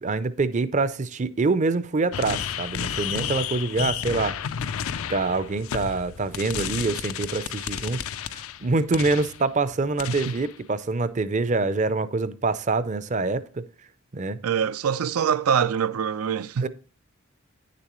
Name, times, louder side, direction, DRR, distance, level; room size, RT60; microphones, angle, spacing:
voice 1, 0.0-4.4 5.1-13.6 14.1-14.4 16.6-16.7, right 3 dB, 35° right, 0.5 m, -25 dB
sound 1, 2.1-9.4 10.0-10.5, left 8 dB, 75° left, 0.5 m, -32 dB
voice 2, 14.4-16.7, right 7 dB, 90° right, 0.4 m, -24 dB
9.7 x 6.8 x 3.0 m
head